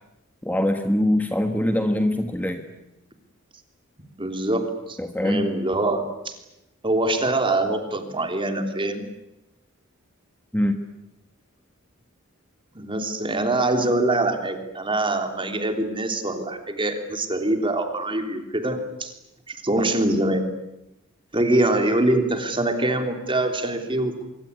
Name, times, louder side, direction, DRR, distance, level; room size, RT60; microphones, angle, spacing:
voice 1, 0.4-2.6 5.0-5.5 10.5-10.8, left 1 dB, 10° left, 6 dB, 1.5 m, -23 dB
voice 2, 4.2-6.4 6.8-9.0 12.7-19.1 19.5-20.5 21.3-24.3, right 2 dB, 25° right, 6 dB, 3.3 m, -24 dB
24.5 x 24.0 x 9.8 m, 0.93 s
head